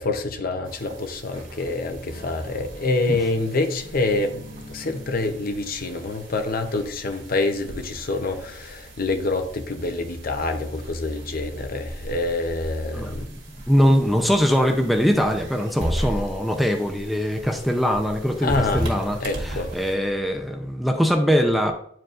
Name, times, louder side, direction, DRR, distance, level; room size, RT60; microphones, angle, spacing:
voice 1, 0.0-13.3 18.4-18.9 19.2-19.7, left 2 dB, 50° left, 0.7 m, -26 dB
sound 1, 0.7-19.9, equal, 70° right, 1.9 m, -37 dB
voice 2, 12.9-13.3 13.7-21.7, equal, ahead, 0.5 m, -22 dB
9.1 x 4.6 x 2.5 m
head